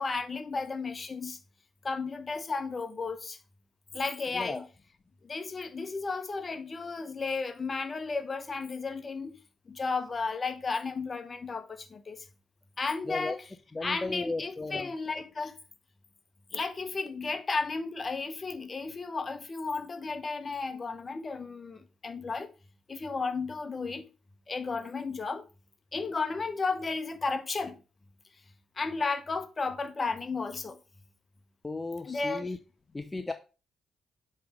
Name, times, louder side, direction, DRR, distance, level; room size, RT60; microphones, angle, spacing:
voice 1, 0.0-1.4 1.8-3.4 3.9-4.7 5.2-9.4 9.7-12.3 12.8-13.5 13.8-15.6 16.5-22.5 22.9-24.1 24.5-25.4 25.9-27.8 28.8-30.8 32.0-32.6, left 4 dB, 40° left, 1.0 m, -33 dB
voice 2, 13.7-14.9 31.6-32.6 32.9-33.3, left 3 dB, 25° left, 0.6 m, -35 dB
7.9 x 3.4 x 5.1 m
hypercardioid pair, 40°, 0 cm